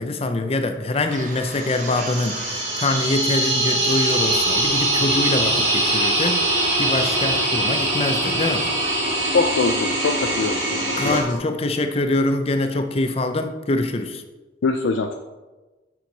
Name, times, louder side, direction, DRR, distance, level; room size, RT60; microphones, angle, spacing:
voice 1, 0.0-8.7 11.0-14.2, left 2 dB, 30° left, 7 dB, 0.5 m, -24 dB
sound 1, 1.1-10.5, right 3 dB, 40° right, 0.9 m, -37 dB
sound 2, 1.5-11.2, right 2 dB, 75° right, 2.5 m, -23 dB
sound 3, 4.1-11.4, left 1 dB, 55° left, 1.7 m, -31 dB
voice 2, 9.3-11.2 14.6-15.2, left 4 dB, 85° left, 5 dB, 0.4 m, -23 dB
7.0 x 6.3 x 4.0 m, 1.2 s
head